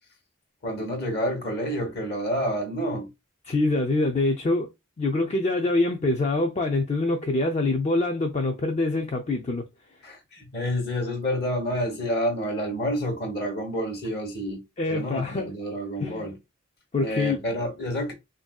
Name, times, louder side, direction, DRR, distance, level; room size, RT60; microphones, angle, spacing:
voice 1, 0.6-3.1 10.0-14.6 14.9-16.4 17.0-18.1, equal, 50° left, 1.0 m, -29 dB
voice 2, 3.4-4.7 5.0-9.7 14.8-15.5 16.0-16.3 16.9-17.4, left 2 dB, 30° left, 0.4 m, -25 dB
3.5 x 2.6 x 2.2 m
head